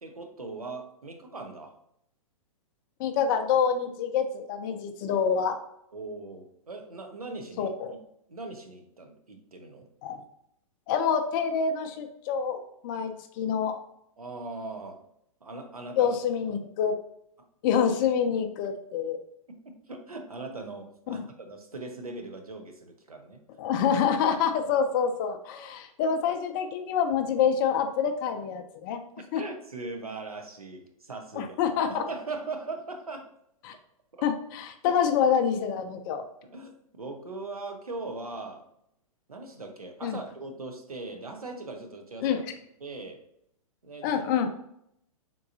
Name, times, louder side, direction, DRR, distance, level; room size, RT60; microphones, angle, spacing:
voice 1, 0.0-1.7 5.9-7.7 8.3-9.9 14.2-15.0 15.4-16.2 19.5-23.4 29.2-31.6 31.9-33.3 34.1-34.3 34.8-35.0 36.4-38.7 39.3-42.4 42.8-43.2 43.8-44.2, right 3 dB, 90° right, 4 dB, 0.7 m, -40 dB
voice 2, 3.0-5.6 7.6-7.9 10.0-10.2 10.9-13.8 16.0-17.0 17.6-19.2 21.1-21.2 23.6-29.0 29.3-29.4 31.3-32.0 33.6-33.7 34.2-36.3 40.0-40.2 42.2-42.4 44.0-44.5, left 7 dB, 35° left, 6 dB, 0.4 m, -26 dB
3.7 x 3.0 x 2.6 m, 0.74 s
figure-of-eight pair, 110°, 18 cm